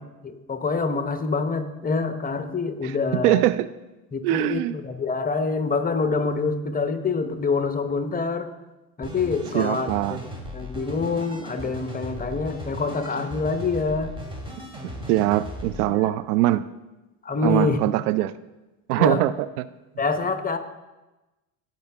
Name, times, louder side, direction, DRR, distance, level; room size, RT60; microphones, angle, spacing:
voice 1, 0.2-3.5 4.1-8.5 9.0-14.1 15.9-16.1 17.2-17.8 19.0-19.2 20.0-20.6, left 4 dB, 20° left, 8 dB, 1.0 m, -26 dB
voice 2, 2.8-3.7 4.2-4.8 9.5-10.2 14.8-16.7 17.4-18.3 18.9-19.7, right 15 dB, 75° right, 15 dB, 0.5 m, -22 dB
sound 1, 9.0-15.9, equal, 10° right, 2.5 m, -37 dB
16.5 x 5.8 x 3.4 m, 1.0 s
hypercardioid pair, 75°, 46 cm